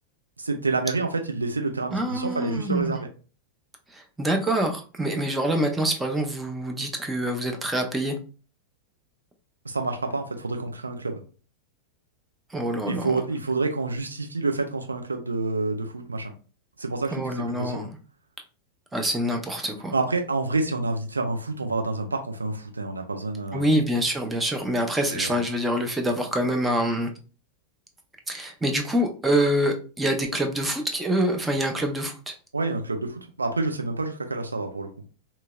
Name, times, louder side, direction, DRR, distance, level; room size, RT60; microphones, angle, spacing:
voice 1, 0.4-3.1 9.6-11.2 12.8-16.3 16.8-17.9 19.9-23.8 25.1-25.4 32.5-34.9, right 3 dB, 80° right, 4 dB, 0.4 m, -28 dB
voice 2, 1.9-3.0 3.9-8.2 12.5-13.2 17.1-17.9 18.9-19.9 23.5-27.1 28.3-32.3, right 1 dB, 10° right, 3 dB, 0.5 m, -26 dB
2.8 x 2.7 x 2.2 m, 0.37 s
figure-of-eight pair, 90°, 0 cm